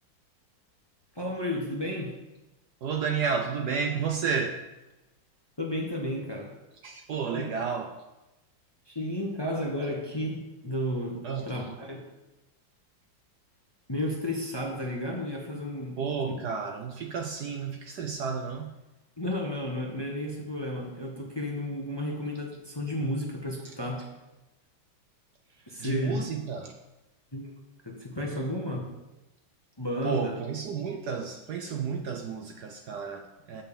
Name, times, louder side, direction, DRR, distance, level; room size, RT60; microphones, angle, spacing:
voice 1, 1.1-2.1 5.6-6.5 7.3-7.4 8.9-12.0 13.9-16.0 19.2-24.1 25.7-26.2 27.3-27.5 27.8-28.9 29.8-30.4, left 1 dB, 15° left, -1 dB, 1.1 m, -32 dB
voice 2, 2.8-4.6 6.8-7.9 11.2-11.6 16.0-18.7 23.6-23.7 25.8-26.8 30.0-33.6, right 6 dB, 65° right, 4 dB, 1.1 m, -31 dB
9.2 x 5.6 x 6.9 m, 1.0 s
omnidirectional pair, 2.1 m